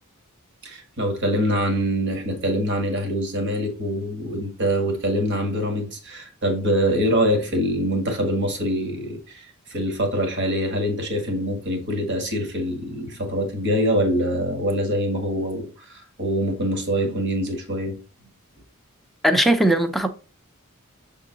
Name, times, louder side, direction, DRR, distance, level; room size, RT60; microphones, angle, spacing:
voice 1, 0.6-18.0, equal, 55° right, 1.7 m, -24 dB
voice 2, 19.2-20.1, right 1 dB, ahead, 0.5 m, -18 dB
7.0 x 3.7 x 3.9 m
head